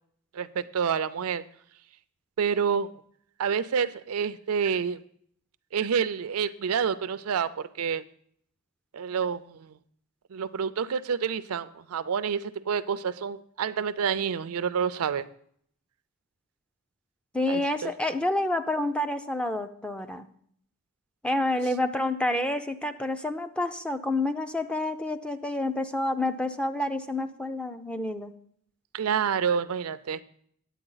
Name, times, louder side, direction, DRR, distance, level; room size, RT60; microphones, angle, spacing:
voice 1, 0.3-1.4 2.4-2.9 3.4-5.0 5.7-8.0 8.9-9.7 10.3-15.3 17.5-17.9 28.9-30.2, right 7 dB, 75° right, 14 dB, 0.4 m, -28 dB
voice 2, 17.3-20.3 21.2-28.3, left 1 dB, 5° left, 8 dB, 0.4 m, -28 dB
9.9 x 8.2 x 3.9 m, 0.65 s
head